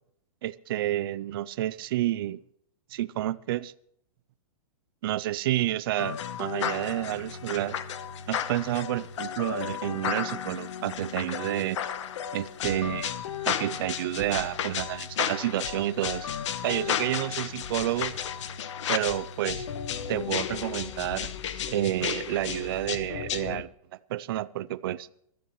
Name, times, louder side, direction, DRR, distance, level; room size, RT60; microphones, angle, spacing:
voice 1, 0.4-2.4 2.9-3.7 5.0-7.8 8.3-11.8 12.3-13.1 13.4-16.3 16.6-18.1 18.9-19.7 20.1-21.3 21.7-25.1, right 14 dB, 40° right, 17 dB, 0.4 m, -30 dB
sound 1, 6.0-23.6, left 9 dB, 50° left, 1.1 m, -33 dB
23.0 x 13.0 x 3.1 m, 0.71 s
hypercardioid pair, 165°, 19 cm